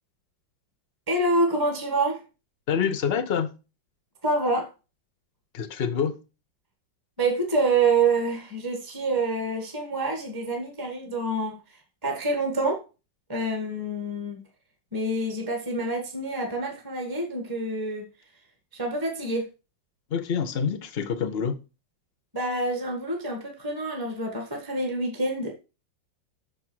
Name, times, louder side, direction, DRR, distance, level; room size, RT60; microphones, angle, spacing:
voice 1, 1.1-2.2 4.2-4.7 7.2-11.6 12.0-12.8 13.3-14.4 14.9-18.1 18.7-19.5 22.3-25.5, right 2 dB, 15° right, 1.3 m, -27 dB
voice 2, 2.7-3.5 5.5-6.2 20.1-21.6, left 7 dB, 50° left, 0.7 m, -26 dB
6.5 x 5.4 x 6.2 m
omnidirectional pair, 2.1 m